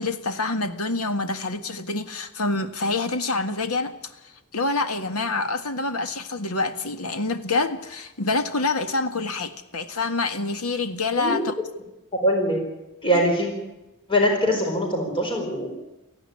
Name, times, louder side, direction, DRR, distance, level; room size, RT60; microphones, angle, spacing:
voice 1, 0.0-4.1 4.5-11.5, left 3 dB, 85° left, 9 dB, 1.8 m, -26 dB
voice 2, 12.2-12.6 13.0-13.5 14.1-15.7, equal, 25° left, 1 dB, 4.6 m, -22 dB
18.0 x 15.0 x 9.9 m, 0.95 s
head